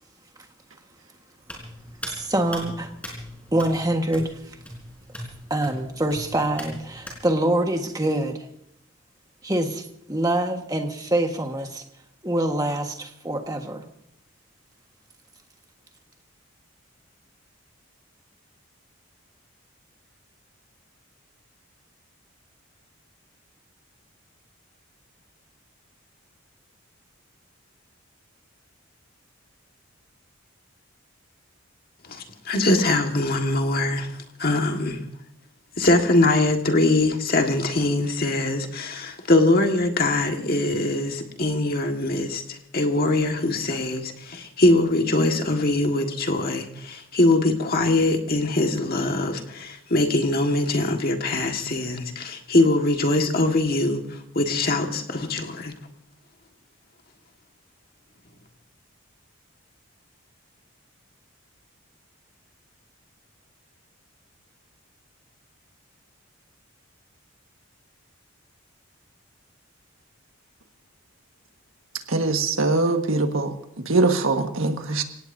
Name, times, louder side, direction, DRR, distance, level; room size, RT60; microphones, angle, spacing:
Hands, 1.4-7.2, equal, 5° left, 4.1 m, -40 dB
voice 1, 2.1-2.9 3.5-4.6 5.5-8.5 9.4-11.8 12.2-13.8, right 1 dB, 15° right, 1.5 m, -25 dB
voice 2, 32.0-35.0 35.8-55.7, left 2 dB, 45° left, 1.7 m, -22 dB
voice 3, 72.1-73.5 73.8-75.0, right 3 dB, 75° right, 1.6 m, -22 dB
27.5 x 17.0 x 2.7 m
head